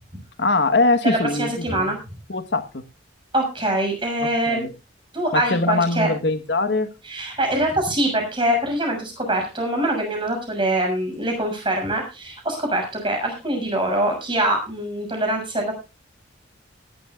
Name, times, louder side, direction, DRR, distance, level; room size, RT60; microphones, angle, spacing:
voice 1, 0.4-1.9 2.3-2.8 4.2-4.7 5.3-6.9, left 2 dB, 60° left, 1.3 m, -22 dB
voice 2, 1.0-2.0 3.3-4.7 5.1-6.1 7.0-15.8, right 1 dB, 25° right, 6.5 m, -24 dB
19.0 x 12.5 x 2.4 m
head